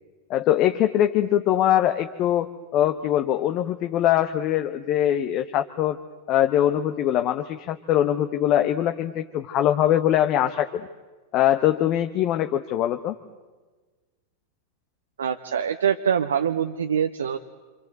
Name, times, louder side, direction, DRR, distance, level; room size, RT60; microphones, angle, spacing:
voice 1, 0.3-6.0 6.3-10.9 11.3-13.1, left 11 dB, 35° left, 7 dB, 1.1 m, -22 dB
voice 2, 15.2-17.4, right 8 dB, 70° right, 6 dB, 0.9 m, -24 dB
27.0 x 26.5 x 7.9 m, 1.3 s
figure-of-eight pair, 90°, 0 cm